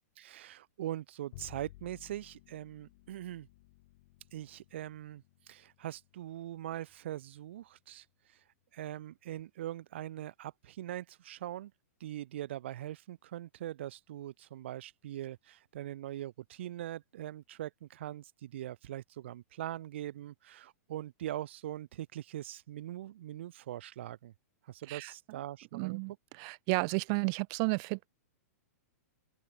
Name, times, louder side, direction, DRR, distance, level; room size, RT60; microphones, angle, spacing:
voice 1, 0.2-3.5 4.3-8.4 8.7-11.7 12.0-24.3 24.6-26.0, right 13 dB, 45° right, 0.9 m, -42 dB
Bowed string instrument, 1.3-7.8, left 19 dB, 35° left, 2.3 m, -58 dB
voice 2, 24.9-25.4 25.7-28.1, right 38 dB, 25° right, 0.4 m, -33 dB
open air
hypercardioid pair, 180°, 9 cm